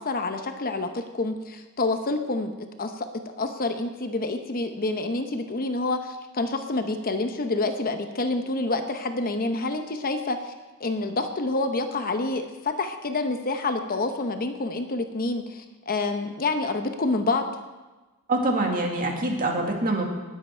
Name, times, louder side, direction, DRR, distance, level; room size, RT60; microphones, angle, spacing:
voice 1, 0.0-2.5 2.8-3.1 3.4-10.5 10.8-17.5, left 2 dB, 45° left, 7 dB, 0.9 m, -28 dB
voice 2, 18.3-20.0, right 2 dB, 40° right, 1 dB, 2.0 m, -25 dB
19.5 x 8.0 x 4.5 m, 1.2 s
head